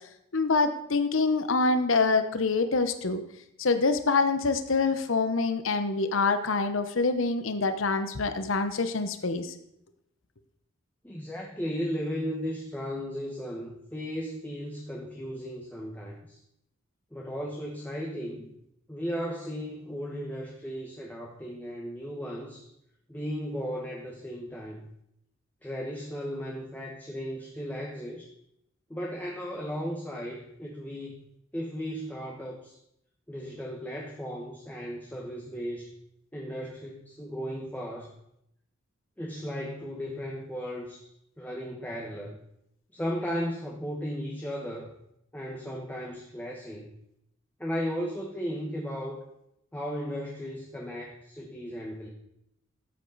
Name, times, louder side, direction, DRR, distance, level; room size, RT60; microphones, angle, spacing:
voice 1, 0.3-3.2 3.6-9.5, left 3 dB, 75° left, 10 dB, 0.9 m, -26 dB
voice 2, 11.0-16.4 17.1-18.5 18.9-22.7 23.1-24.8 25.6-28.3 28.9-31.2 31.5-32.8 33.3-35.9 36.3-38.1 39.2-41.0 41.4-42.4 42.9-44.9 45.3-46.9 47.6-49.3 49.7-52.1, equal, 10° left, -2 dB, 1.2 m, -35 dB
13.5 x 8.3 x 4.0 m, 0.78 s
head